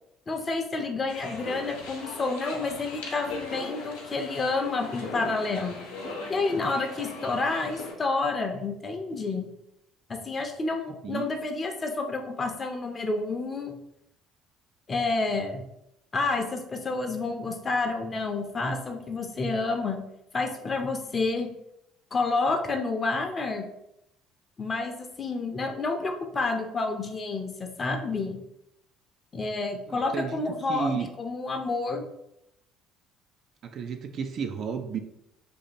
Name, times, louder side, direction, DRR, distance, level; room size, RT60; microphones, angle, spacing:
voice 1, 0.3-5.9 6.3-9.5 10.1-13.8 14.9-15.6 16.1-20.0 20.3-21.5 22.1-23.7 24.6-28.4 29.3-32.0, left 3 dB, 30° left, 4 dB, 0.6 m, -29 dB
sound 1, 1.1-7.9, left 2 dB, 70° left, 0.8 m, -39 dB
voice 2, 29.9-30.4 30.7-31.1 33.6-35.0, right 6 dB, 45° right, 6 dB, 0.3 m, -32 dB
2.8 x 2.7 x 4.0 m, 0.81 s
figure-of-eight pair, 55°, 0 cm